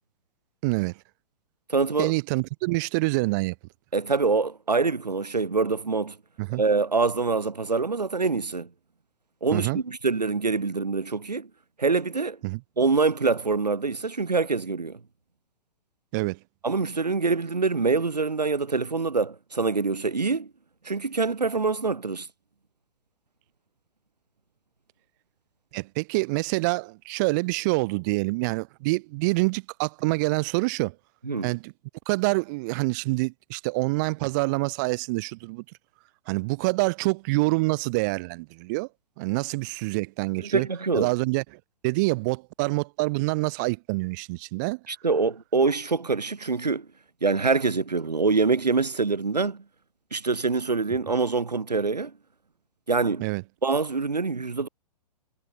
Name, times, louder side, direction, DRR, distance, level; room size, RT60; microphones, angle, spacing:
voice 1, 0.6-0.9 2.0-3.5 6.4-6.6 9.5-9.8 12.4-12.6 16.1-16.4 25.7-30.9 31.4-31.7 32.1-35.6 36.3-38.9 39.2-40.7 40.9-41.4 41.8-44.8 53.2-53.4, right 25 dB, 30° right, 0.4 m, -26 dB
voice 2, 1.7-2.1 3.9-6.2 6.6-8.7 9.4-11.5 11.8-12.4 12.8-15.0 16.6-20.5 20.8-22.3 31.2-31.5 40.4-41.1 44.9-46.9 47.2-49.6 50.1-52.1 52.9-53.2 53.6-54.7, right 4 dB, 85° right, 0.7 m, -25 dB
figure-of-eight pair, 110°, 21 cm